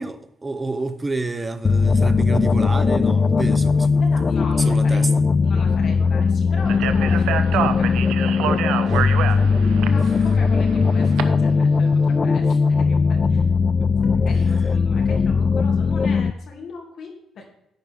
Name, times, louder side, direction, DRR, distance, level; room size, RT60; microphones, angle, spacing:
voice 1, 0.0-4.1 4.6-5.3 8.9-9.5 13.8-13.9, right 3 dB, 20° right, 0.6 m, -29 dB
sound 1, 1.6-16.3, left 5 dB, 35° left, 0.3 m, -19 dB
voice 2, 4.0-5.0 5.4-7.9 8.8-9.1 9.4-13.5 14.0-17.5, left 4 dB, 65° left, 2.7 m, -39 dB
Speech, 6.7-11.2, right 9 dB, 90° right, 0.8 m, -27 dB
10.5 x 9.3 x 3.7 m
cardioid pair, 90°, 0 cm